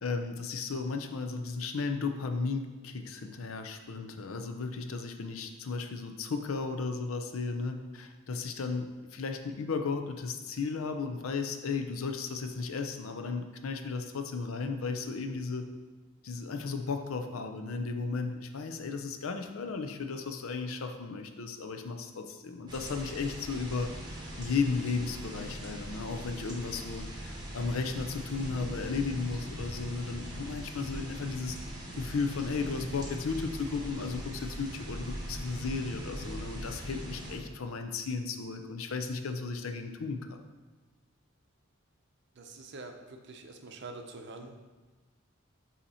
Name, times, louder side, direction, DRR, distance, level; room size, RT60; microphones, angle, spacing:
voice 1, 0.0-15.7 16.2-23.9 24.4-31.6 32.0-40.4, left 4 dB, 80° left, 6 dB, 0.5 m, -35 dB
sound 1, 22.7-37.4, equal, 20° right, 1.0 m, -41 dB
voice 2, 42.3-44.6, right 3 dB, 55° right, 4 dB, 0.6 m, -45 dB
8.1 x 2.9 x 4.2 m, 1.3 s
head